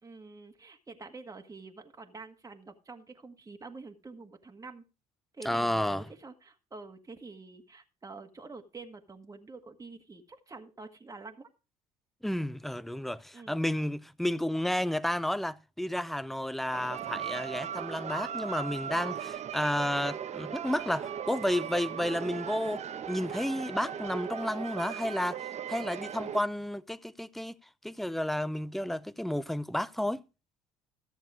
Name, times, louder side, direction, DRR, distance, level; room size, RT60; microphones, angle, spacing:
voice 1, 0.0-4.8 5.3-11.5 13.3-13.6, right 3 dB, 20° right, 1.7 m, -47 dB
voice 2, 5.4-6.1 12.2-22.8 23.1-25.4 25.7-27.5 27.8-30.2, left 1 dB, ahead, 0.6 m, -31 dB
sound 1, 16.7-26.4, right 8 dB, 40° right, 1.2 m, -38 dB
14.0 x 7.2 x 4.9 m
hypercardioid pair, 70°, 18 cm